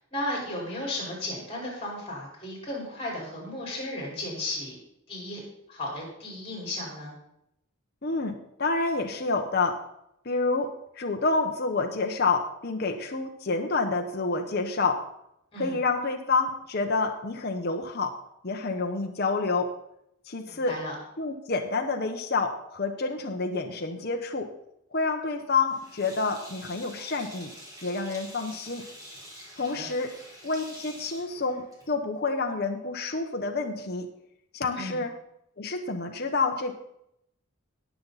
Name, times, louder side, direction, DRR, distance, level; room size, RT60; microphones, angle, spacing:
voice 1, 0.1-4.8 5.1-5.4 5.7-7.1 15.5-15.8 20.4-20.9 29.7-29.9 34.7-35.0, left 1 dB, 25° left, -3 dB, 4.9 m, -34 dB
voice 2, 8.0-9.8 10.2-15.0 15.6-18.1 18.4-19.7 20.3-20.8 21.2-24.5 24.9-27.5 27.8-28.8 29.6-30.1 30.4-34.1 34.5-35.1 35.6-36.7, left 3 dB, 45° left, 3 dB, 0.9 m, -28 dB
Sink (filling or washing), 25.7-32.1, equal, 15° right, 3.0 m, -47 dB
18.0 x 7.1 x 4.1 m, 0.79 s
head